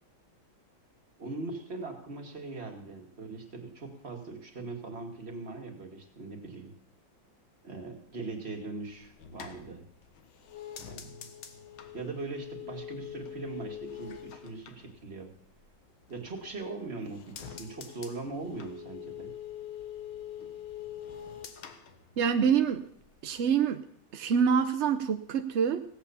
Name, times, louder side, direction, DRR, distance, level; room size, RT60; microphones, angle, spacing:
voice 1, 1.2-6.7 7.6-9.9 10.9-11.3 11.9-15.3 16.1-19.3, right 3 dB, 30° right, 2 dB, 2.2 m, -40 dB
sound 1, 8.9-15.7 16.0-16.7 17.0-22.7 23.0-23.5, left 9 dB, 85° left, 2.0 m, -44 dB
voice 2, 22.2-22.8 23.2-23.8 24.1-25.8, right 7 dB, 65° right, 8 dB, 0.6 m, -26 dB
16.5 x 8.5 x 7.0 m, 0.63 s
omnidirectional pair, 2.2 m